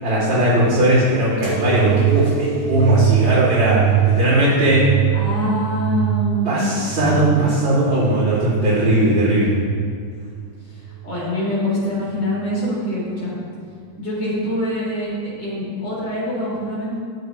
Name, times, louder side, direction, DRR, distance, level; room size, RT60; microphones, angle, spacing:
voice 1, 0.0-4.9 6.4-9.6, right 1 dB, 75° right, -13 dB, 3.7 m, -18 dB
sound 1, 1.4-8.6 9.2-9.9 10.7-11.2 12.2-12.3, right 10 dB, 35° left, 2.1 m, -22 dB
voice 2, 5.1-7.3 10.7-13.4 14.0-15.1 15.4-17.0, left 1 dB, 60° left, -7 dB, 3.9 m, -25 dB
18.5 x 6.7 x 3.2 m, 2.2 s
omnidirectional pair, 2.2 m